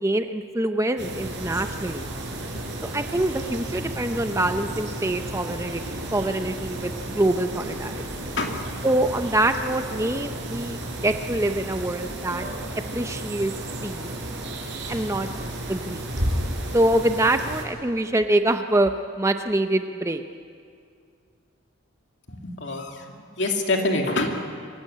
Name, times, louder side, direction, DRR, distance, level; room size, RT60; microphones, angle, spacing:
voice 1, 0.0-2.1 2.8-5.8 6.1-8.0 8.8-12.5 12.9-13.5 13.8-14.1 14.9-15.3 15.7-16.0 16.7-20.2, right 1 dB, 15° right, 8 dB, 0.6 m, -25 dB
sound 1, 1.0-17.6, right 1 dB, 60° right, 4.6 m, -33 dB
voice 2, 22.3-23.0 23.4-24.3, left 2 dB, 60° left, 2 dB, 2.6 m, -25 dB
24.0 x 15.5 x 9.8 m, 2.2 s
head